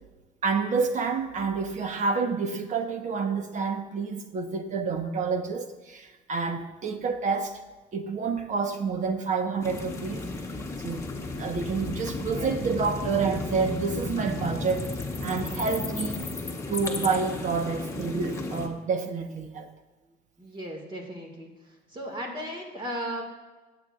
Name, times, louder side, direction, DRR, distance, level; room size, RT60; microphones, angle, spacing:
voice 1, 0.4-7.6 7.9-10.3 10.8-16.2 16.7-19.7, right 5 dB, 45° right, 1.3 m, -29 dB
sound 1, 9.6-18.7, left 2 dB, 15° left, 1.4 m, -34 dB
voice 2, 20.4-21.5 21.9-23.2, equal, 30° right, 2.2 m, -36 dB
20.5 x 8.2 x 2.6 m
cardioid pair, 110°, 17 cm